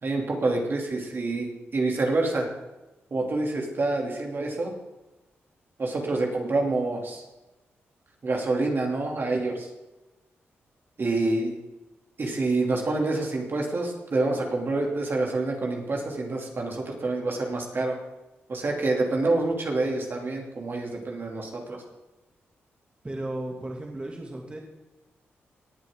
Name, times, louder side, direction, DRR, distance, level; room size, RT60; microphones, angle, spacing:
voice 1, 0.0-2.5 3.1-4.7 5.8-7.2 8.2-9.7 11.0-11.5 12.2-18.0 18.5-21.8, right 2 dB, 50° right, 0 dB, 2.9 m, -27 dB
voice 2, 23.0-24.6, right 1 dB, 25° right, -1 dB, 2.4 m, -35 dB
18.5 x 8.0 x 3.8 m, 1.0 s
cardioid pair, 65°, 5 cm